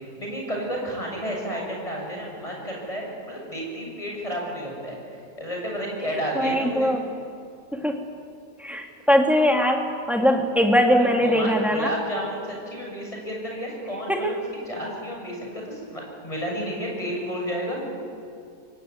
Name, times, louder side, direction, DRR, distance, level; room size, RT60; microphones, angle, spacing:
voice 1, 0.2-6.9 10.9-17.9, equal, 20° left, -1 dB, 7.4 m, -31 dB
voice 2, 6.3-7.1 7.7-8.0 8.6-11.9 14.1-14.4, equal, ahead, 2 dB, 2.6 m, -21 dB
24.5 x 24.0 x 9.6 m, 2.4 s
omnidirectional pair, 1.5 m